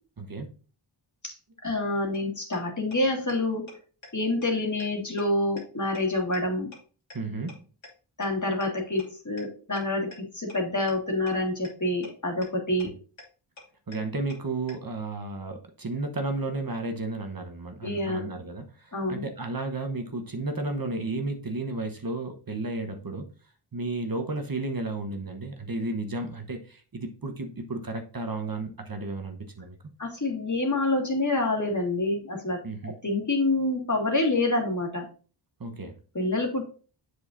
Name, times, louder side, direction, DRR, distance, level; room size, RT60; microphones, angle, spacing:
voice 1, 0.2-0.5 7.1-7.5 13.9-23.3 23.7-29.8 32.6-32.9 35.6-36.0, right 2 dB, 45° right, 5 dB, 1.1 m, -33 dB
voice 2, 1.6-3.7 4.1-6.7 8.2-13.0 17.8-18.3 18.9-19.2 30.0-35.0 36.1-36.6, left 2 dB, 40° left, 1 dB, 2.1 m, -27 dB
sound 1, 2.1-2.2 2.5-2.6 2.9-3.0 3.3-3.4 3.7-3.8 4.0-4.1 4.4-4.5 4.8-4.9 5.2-5.3 5.6-5.7 5.9-6.0 6.3-6.4 6.7-6.8 7.1-7.2 7.5-7.6 7.8-7.9 8.2-8.3 8.6-8.7 9.0-9.1 9.4-9.5 9.8-9.9 10.1-10.2 10.5-10.6 10.9-11.0 11.3-11.4 11.6-11.7 12.0-12.1 12.4-12.5 12.8-12.9 13.2-13.3 13.6-13.7 13.9-14.0 14.3-14.4 14.7-14.8, left 2 dB, 70° left, 2.2 m, -45 dB
7.4 x 6.4 x 2.6 m, 0.37 s
wide cardioid pair, 60°, 47 cm